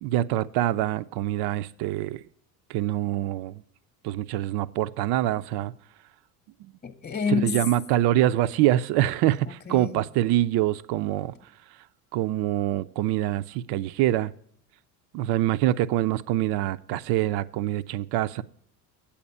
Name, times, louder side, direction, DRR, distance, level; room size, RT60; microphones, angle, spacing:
voice 1, 0.0-2.2 2.7-3.6 4.0-5.7 6.6-6.7 7.3-11.3 12.1-14.3 15.1-18.4, right 14 dB, 55° right, 0.6 m, -25 dB
voice 2, 6.8-7.6 9.4-10.0, left 6 dB, 20° left, 1.0 m, -29 dB
8.6 x 8.5 x 5.4 m
hypercardioid pair, 75°, 47 cm